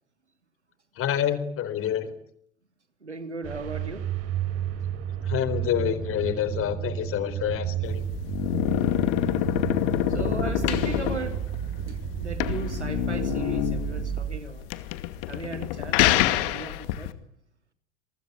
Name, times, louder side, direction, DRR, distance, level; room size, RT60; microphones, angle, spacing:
voice 1, 1.0-2.1 5.2-8.0, left 10 dB, 40° left, 4.4 m, -27 dB
voice 2, 3.0-4.1 8.8-9.2 10.1-11.4 11.9-14.7 15.3-17.1, right 3 dB, 90° right, 3.3 m, -37 dB
sound 1, 3.4-14.4, right 10 dB, 45° right, 5.7 m, -32 dB
sound 2, 7.8-17.1, left 14 dB, 55° left, 2.5 m, -26 dB
28.0 x 24.0 x 8.7 m
figure-of-eight pair, 75°, 33 cm